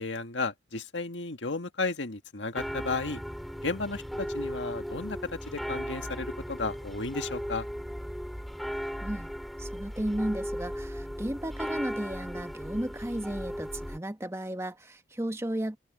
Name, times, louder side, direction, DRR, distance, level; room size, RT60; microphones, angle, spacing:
voice 1, 0.0-3.2 3.6-7.7, left 3 dB, 85° left, 1.7 m, -33 dB
sound 1, 2.5-14.0, equal, ahead, 2.4 m, -37 dB
voice 2, 9.6-15.8, right 1 dB, 15° right, 1.2 m, -34 dB
open air
head